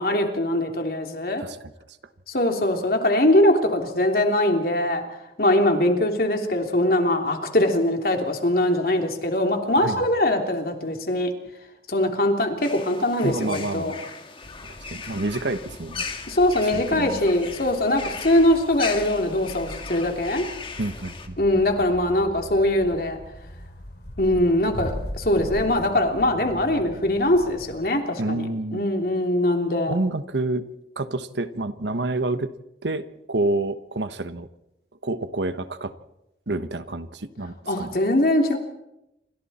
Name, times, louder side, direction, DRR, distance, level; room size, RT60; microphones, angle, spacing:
voice 1, 0.0-1.4 2.3-5.0 5.4-11.3 11.9-13.9 16.3-20.4 21.4-23.2 24.2-28.5 28.7-29.9 37.7-38.6, left 1 dB, 55° left, 3 dB, 3.2 m, -22 dB
sound 1, 12.6-21.3, left 5 dB, 30° left, 1.9 m, -38 dB
voice 2, 13.2-14.0 14.9-16.1 16.6-17.2 20.8-21.4 28.2-28.8 29.9-30.7 31.0-32.5 32.8-34.5 35.0-35.9 36.5-37.9, right 2 dB, 85° right, 11 dB, 1.2 m, -28 dB
sound 2, 14.4-27.9, equal, 80° left, 3.1 m, -40 dB
28.0 x 25.5 x 4.4 m, 0.88 s
head